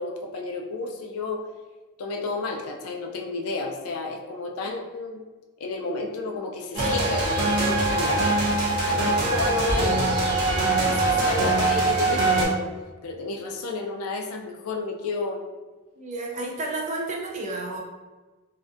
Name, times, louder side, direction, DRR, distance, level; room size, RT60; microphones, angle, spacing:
voice 1, 0.0-1.5 2.0-5.2 5.6-8.3 8.7-10.0 10.5-12.6 13.0-15.4, left 3 dB, 80° left, 2 dB, 0.4 m, -31 dB
sound 1, 6.7-12.4, right 2 dB, 85° right, 0.7 m, -23 dB
voice 2, 16.0-17.8, right 2 dB, 35° right, 0 dB, 0.3 m, -31 dB
2.5 x 2.2 x 2.4 m, 1.3 s
head